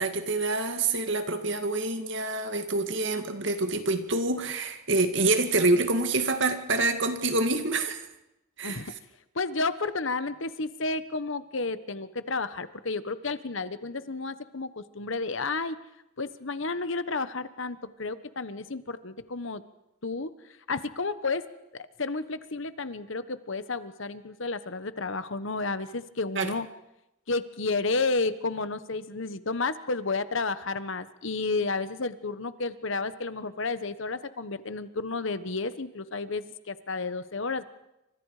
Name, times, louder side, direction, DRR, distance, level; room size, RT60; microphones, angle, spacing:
voice 1, 0.0-8.1 8.6-8.8 26.4-26.5, right 2 dB, 55° right, 7 dB, 2.3 m, -26 dB
voice 2, 9.3-15.8 16.2-19.6 20.0-20.3 20.7-21.4 21.7-26.7 27.3-37.6, left 3 dB, 65° left, 13 dB, 1.2 m, -31 dB
29.0 x 25.5 x 5.0 m, 0.90 s
head